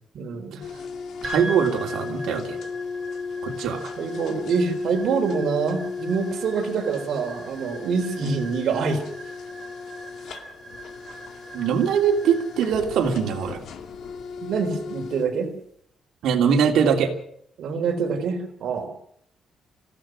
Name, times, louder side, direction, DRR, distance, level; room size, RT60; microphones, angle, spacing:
voice 1, 0.1-0.6 4.0-9.0 14.4-15.5 17.6-18.9, right 5 dB, 65° right, 3 dB, 4.2 m, -26 dB
sound 1, 0.6-15.3, left 5 dB, 65° left, 2.2 m, -36 dB
sound 2, 1.2-15.6, equal, 30° right, 6.7 m, -42 dB
voice 2, 1.2-2.6 3.4-3.9 8.2-8.3 11.5-13.6 16.2-17.1, right 7 dB, 80° right, 2 dB, 3.0 m, -22 dB
26.0 x 16.0 x 6.4 m, 0.69 s
cardioid pair, 160°, 0 cm